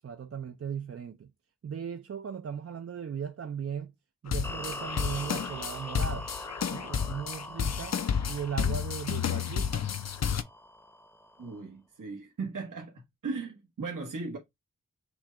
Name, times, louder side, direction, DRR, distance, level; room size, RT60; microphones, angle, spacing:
voice 1, 0.0-1.3 1.6-3.9 4.2-6.3 6.7-8.0 8.3-9.9, right 7 dB, 50° right, 0.4 m, -37 dB
sound 1, 4.3-10.4, left 7 dB, 55° left, 0.5 m, -31 dB
sound 2, 4.4-11.6, left 1 dB, 5° left, 0.7 m, -43 dB
voice 2, 11.4-14.4, right 4 dB, 80° right, 1.2 m, -37 dB
6.2 x 2.2 x 3.7 m
wide cardioid pair, 80°, 31 cm